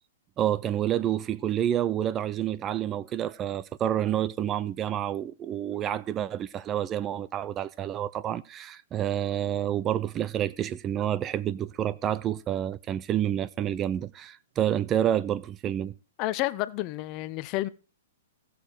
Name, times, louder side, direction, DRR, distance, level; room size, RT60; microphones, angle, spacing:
voice 1, 0.4-15.9, right 11 dB, 25° right, 0.5 m, -28 dB
voice 2, 16.2-17.7, left 17 dB, 35° left, 0.6 m, -30 dB
16.5 x 6.9 x 4.5 m
hypercardioid pair, 140°, 0 cm